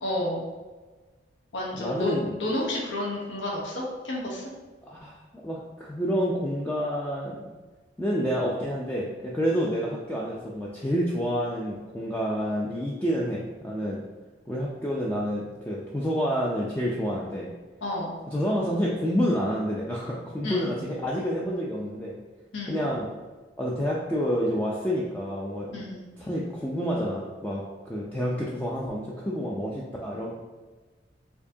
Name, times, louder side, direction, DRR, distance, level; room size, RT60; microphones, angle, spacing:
voice 1, 0.0-0.4 1.5-4.4 17.8-18.1 20.4-20.7 22.5-22.8 25.7-26.1, left 1 dB, 85° left, -3 dB, 0.9 m, -31 dB
voice 2, 1.8-2.4 4.8-7.4 8.0-14.0 14.5-17.5 18.3-22.1 22.7-23.1 23.6-25.8 26.2-30.3, equal, 10° left, -5 dB, 0.4 m, -28 dB
4.4 x 2.7 x 2.7 m, 1.3 s
head